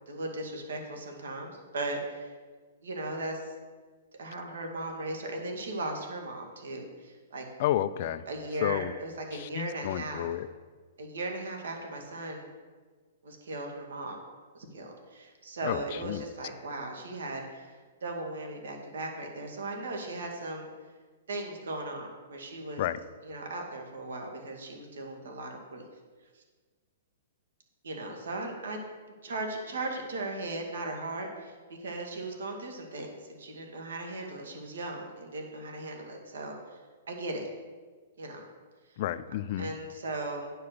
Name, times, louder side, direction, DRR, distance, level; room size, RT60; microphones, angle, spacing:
voice 1, 0.1-2.3 2.8-3.5 4.2-7.4 8.3-10.3 11.0-12.5 13.2-14.2 14.5-20.7 21.3-22.9 23.2-25.8 26.3-26.4 27.8-28.8 29.2-36.8 37.1-37.4 38.2-38.5 39.6-40.5, right 2 dB, 90° right, 2 dB, 2.0 m, -37 dB
voice 2, 7.6-8.2 8.6-8.9 9.3-10.5 15.6-16.2 22.8-23.0 39.0-39.7, left 12 dB, 45° left, 13 dB, 0.4 m, -31 dB
9.5 x 5.6 x 6.7 m, 1.5 s
hypercardioid pair, 160°, 0 cm